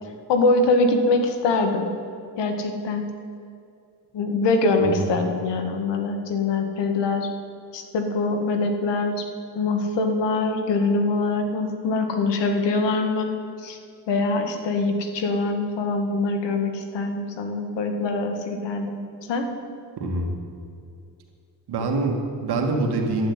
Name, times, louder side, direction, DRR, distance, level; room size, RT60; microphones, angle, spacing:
voice 1, 0.3-1.9 2.4-3.0 4.1-7.3 7.7-9.2 9.6-13.3 13.6-13.8 14.1-19.0 19.3-19.5, left 3 dB, 90° left, 5 dB, 1.9 m, -23 dB
voice 2, 20.0-20.3 21.7-23.3, right 3 dB, 70° right, 2 dB, 2.5 m, -25 dB
11.5 x 9.4 x 9.7 m, 2.4 s
cardioid pair, 115°, 41 cm